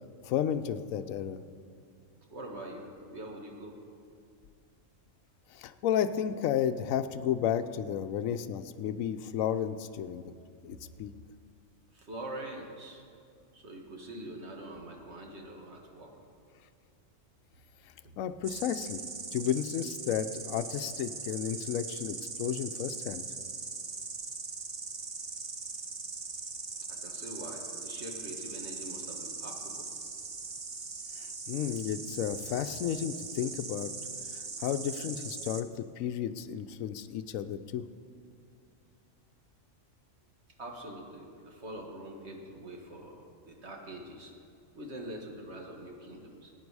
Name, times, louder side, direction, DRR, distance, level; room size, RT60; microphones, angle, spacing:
voice 1, 0.2-1.4 5.5-10.3 10.6-11.1 18.2-19.0 19.3-23.2 31.5-33.9 34.3-37.8, left 9 dB, 85° left, 10 dB, 1.0 m, -32 dB
voice 2, 2.3-3.8 11.9-13.0 13.5-16.1 18.0-18.2 26.9-29.9 40.6-44.3 44.8-46.5, right 1 dB, 55° right, 1 dB, 1.7 m, -44 dB
Insect, 18.4-35.6, right 4 dB, 40° right, 0.4 m, -40 dB
17.0 x 9.2 x 4.7 m, 2.4 s
omnidirectional pair, 1.4 m